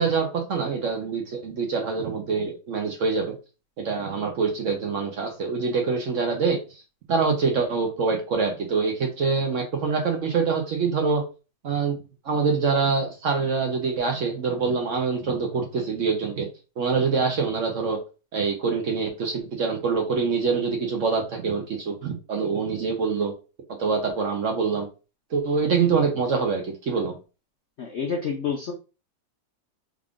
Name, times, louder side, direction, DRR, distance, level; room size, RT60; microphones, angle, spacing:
voice 1, 0.0-3.3 3.8-6.6 7.1-11.2 11.6-12.0 12.2-16.5 16.8-18.0 18.3-23.3 23.8-24.9 25.3-27.1, right 5 dB, 60° right, 2 dB, 0.9 m, -25 dB
voice 2, 27.8-28.7, left 6 dB, 65° left, 2 dB, 0.6 m, -28 dB
3.6 x 2.4 x 3.5 m, 0.32 s
omnidirectional pair, 1.8 m